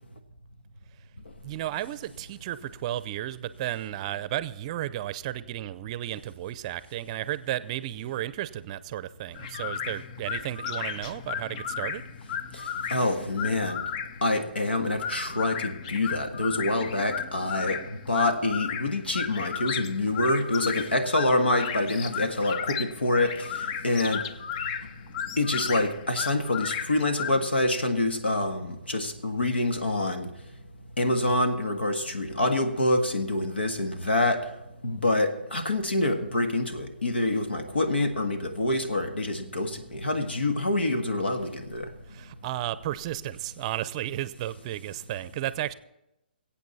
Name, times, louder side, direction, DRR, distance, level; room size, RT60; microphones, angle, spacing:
voice 1, 1.4-12.0 42.1-45.7, right 13 dB, 35° right, 16 dB, 0.6 m, -33 dB
sound 1, 9.3-27.4, left 8 dB, 40° left, 0.6 m, -35 dB
voice 2, 12.9-13.8 14.2-23.3 23.8-24.2 25.4-30.3 31.0-34.4 34.8-41.9, left 2 dB, 85° left, 6 dB, 1.6 m, -26 dB
21.0 x 8.4 x 4.2 m, 0.89 s
hypercardioid pair, 140°, 6 cm